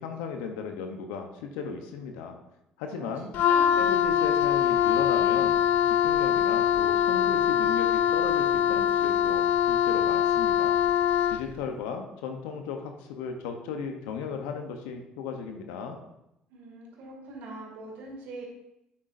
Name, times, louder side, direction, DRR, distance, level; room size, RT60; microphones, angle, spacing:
voice 1, 0.0-2.4 2.8-3.3 3.8-5.6 5.9-10.7 11.3-16.0, left 5 dB, 85° left, 4 dB, 0.8 m, -36 dB
voice 2, 2.9-3.9 16.5-18.4, right 2 dB, 75° right, 0 dB, 2.3 m, -42 dB
Wind instrument woodwind instrument, 3.3-11.5, left 9 dB, 70° left, 0.3 m, -23 dB
8.7 x 7.4 x 2.6 m, 0.86 s
supercardioid pair, 70°, 3 cm